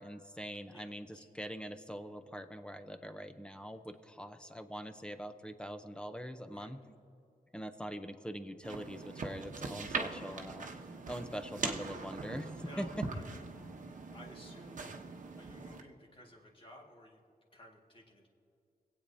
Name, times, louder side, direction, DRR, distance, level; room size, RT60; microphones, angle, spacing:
voice 1, 0.0-6.8 7.5-10.7 11.1-12.9, equal, 5° left, 9 dB, 0.7 m, -43 dB
voice 2, 0.7-1.3 6.4-6.7 12.5-13.8 14.1-15.0 15.4-17.2 17.5-18.3, left 1 dB, 35° left, -1 dB, 1.9 m, -56 dB
sound 1, 8.6-15.8, right 4 dB, 55° right, 1.0 m, -41 dB
25.0 x 8.5 x 2.8 m, 2.5 s
cardioid pair, 95°, 15 cm